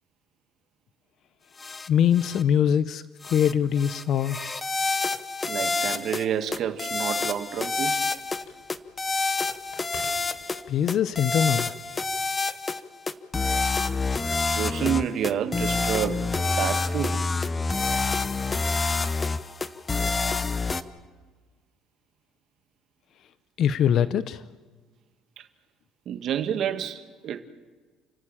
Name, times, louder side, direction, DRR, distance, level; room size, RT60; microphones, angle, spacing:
sound 1, 1.6-1.9 2.2-2.4 3.2-3.5 3.8-6.2 6.5-8.4 8.7-10.6 10.9-12.8 13.1-20.8, left 3 dB, 20° left, 0.8 m, -27 dB
voice 1, 1.9-4.4 10.7-11.7 19.9-20.1 23.6-24.4, left 9 dB, 50° left, 0.7 m, -23 dB
voice 2, 5.5-8.0 14.4-16.3 16.6-17.2 25.4-25.5 26.0-27.4, right 9 dB, 50° right, 1.6 m, -29 dB
Telephone, 6.4-11.1, left 4 dB, 75° left, 4.8 m, -50 dB
29.0 x 15.5 x 8.9 m
cardioid pair, 145°, 0 cm